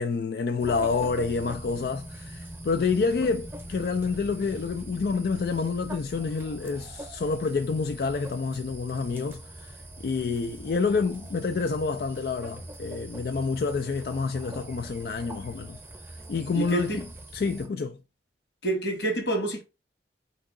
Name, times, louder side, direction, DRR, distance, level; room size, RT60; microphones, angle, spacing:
voice 1, 0.0-15.8 16.1-17.1 17.3-18.0, left 4 dB, 55° left, 0.3 m, -28 dB
sound 1, 0.6-17.7, right 1 dB, 10° right, 0.8 m, -42 dB
voice 2, 16.5-17.0 18.6-19.6, right 2 dB, 80° left, 1.6 m, -27 dB
4.7 x 2.9 x 3.6 m
head